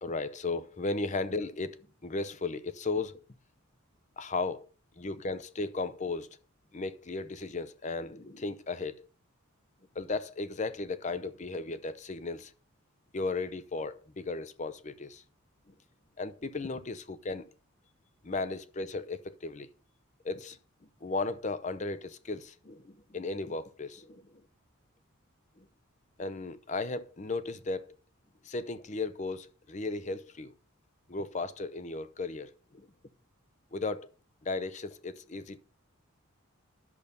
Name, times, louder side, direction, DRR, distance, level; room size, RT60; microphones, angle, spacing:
voice 1, 0.0-3.2 4.2-4.7 5.0-6.3 6.7-9.1 9.9-12.5 13.1-15.2 15.7-15.8 16.2-17.4 18.2-19.7 20.2-20.6 21.0-24.3 25.6-25.7 26.2-28.0 28.4-30.5 31.1-32.9 33.7-34.1 34.4-35.6, left 3 dB, 35° left, 0.6 m, -35 dB
11.0 x 6.8 x 5.3 m
head